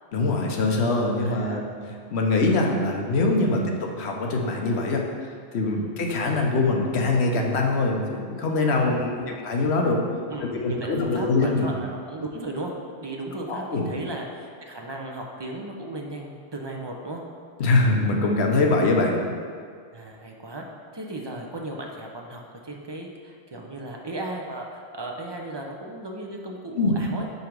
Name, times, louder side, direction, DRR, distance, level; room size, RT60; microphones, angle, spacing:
voice 1, 0.1-1.6 2.1-5.0 5.5-9.1 9.4-10.0 10.5-11.7 13.5-13.8 17.6-19.2 26.8-26.9, left 3 dB, 70° left, 1 dB, 1.1 m, -23 dB
voice 2, 1.2-1.6 3.5-3.6 5.7-5.9 8.8-9.4 10.3-17.2 19.9-20.6 20.9-27.3, right 1 dB, 30° right, 0 dB, 0.5 m, -36 dB
5.4 x 4.9 x 4.6 m, 2.1 s
omnidirectional pair, 1.1 m